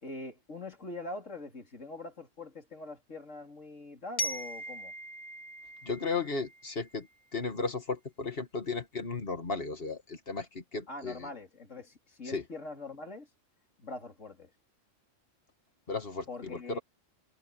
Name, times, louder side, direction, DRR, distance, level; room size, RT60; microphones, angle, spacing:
voice 1, 0.0-4.9 10.9-13.3 13.8-14.5 16.3-16.8, left 2 dB, 70° left, 3.8 m, -43 dB
Glockenspiel, 4.2-7.0, equal, 85° left, 3.3 m, -39 dB
voice 2, 5.8-7.1 7.3-11.3 12.3-12.4 15.9-16.8, left 4 dB, 45° left, 2.2 m, -35 dB
omnidirectional pair, 1.3 m